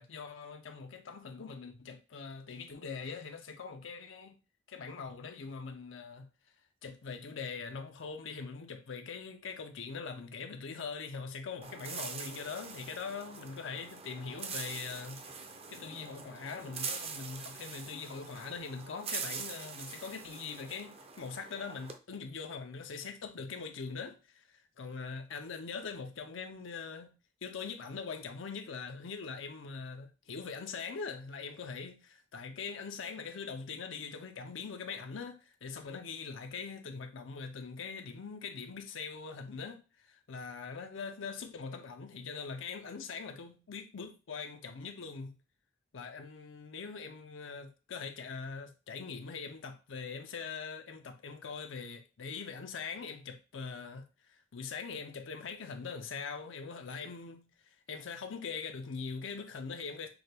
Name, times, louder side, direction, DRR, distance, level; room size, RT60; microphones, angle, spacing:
voice 1, 0.0-4.4 4.7-6.3 6.8-15.2 15.7-27.1 27.4-45.4 45.9-60.1, left 5 dB, 80° left, 0.6 m, -42 dB
sound 1, 11.6-22.0, right 5 dB, 30° right, 0.5 m, -43 dB
6.1 x 2.3 x 3.3 m
head